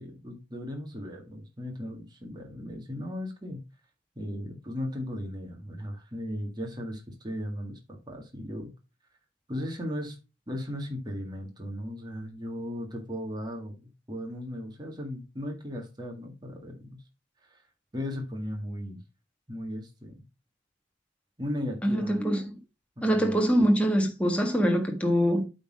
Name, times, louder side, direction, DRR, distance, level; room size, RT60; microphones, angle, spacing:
voice 1, 0.0-3.6 4.2-7.8 8.1-8.7 9.5-10.2 10.5-17.0 17.5-17.6 17.9-19.0 19.5-20.2 21.4-22.2 23.0-23.4, left 1 dB, 20° right, 1.8 m, -36 dB
voice 2, 21.8-22.4 23.0-25.4, equal, 5° left, 1.6 m, -24 dB
8.4 x 4.1 x 5.0 m
head